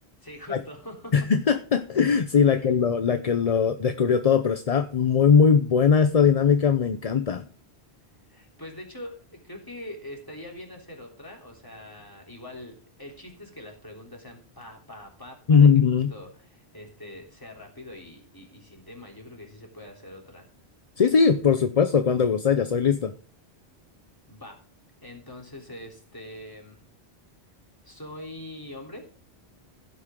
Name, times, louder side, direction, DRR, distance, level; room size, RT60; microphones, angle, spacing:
voice 1, 0.2-1.3 2.5-2.7 8.3-20.5 24.3-24.6 25.0-26.8 27.9-29.1, left 1 dB, 20° left, 0 dB, 3.5 m, -43 dB
voice 2, 1.1-7.5 15.5-16.1 21.0-23.1, left 6 dB, 40° left, 9 dB, 0.7 m, -20 dB
15.5 x 8.3 x 3.7 m, 0.42 s
omnidirectional pair, 1.1 m